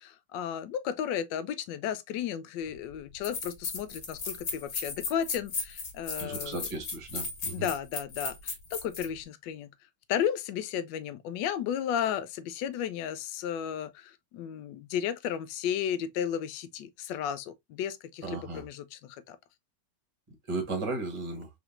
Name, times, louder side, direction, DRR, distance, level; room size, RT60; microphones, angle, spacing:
voice 1, 0.0-6.7 7.5-9.7 10.1-19.4, left 9 dB, 75° left, 1.2 m, -34 dB
sound 1, 2.7-2.8 3.2-9.1, left 4 dB, 55° left, 1.6 m, -36 dB
voice 2, 6.2-7.7 18.2-18.6 20.5-21.5, right 3 dB, 20° right, 1.0 m, -35 dB
3.9 x 3.6 x 2.4 m
omnidirectional pair, 2.1 m